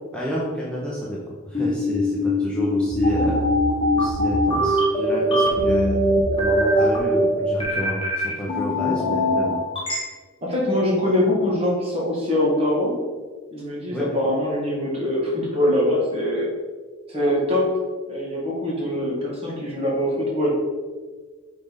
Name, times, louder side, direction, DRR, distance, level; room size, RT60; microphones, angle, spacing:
voice 1, 0.1-1.2 1.5-3.5 3.9-6.0 6.4-9.6 13.9-14.1, equal, 5° left, -6 dB, 0.8 m, -29 dB
sound 1, 1.5-10.0, equal, 25° left, 1.3 m, -21 dB
voice 2, 10.4-13.0 13.5-16.5 17.1-17.7 18.1-20.5, left 1 dB, 25° right, -4 dB, 1.7 m, -23 dB
5.8 x 4.0 x 5.2 m, 1.5 s
head